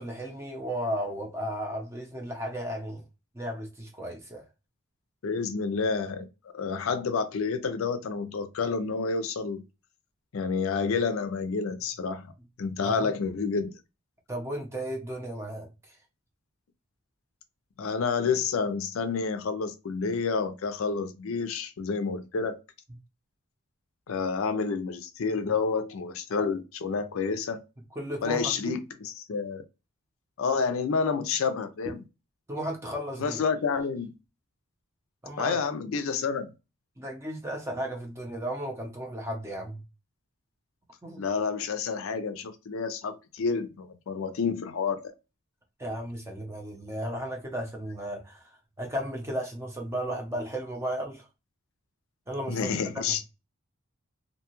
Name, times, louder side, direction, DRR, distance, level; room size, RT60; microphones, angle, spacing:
voice 1, 0.0-3.0 3.3-4.4 12.8-13.1 14.3-15.7 28.0-28.8 32.5-33.4 35.2-35.6 37.0-39.8 41.0-41.2 45.8-48.4 48.8-51.3 52.3-52.7 53.1-53.2, equal, 10° right, 0.6 m, -34 dB
voice 2, 5.2-6.3 6.5-9.6 10.3-12.3 12.6-13.7 17.8-22.6 24.1-27.6 28.2-29.6 30.4-32.0 33.2-34.1 35.4-36.5 41.2-45.1 52.5-53.3, left 5 dB, 70° left, 0.4 m, -29 dB
2.6 x 2.2 x 3.0 m
head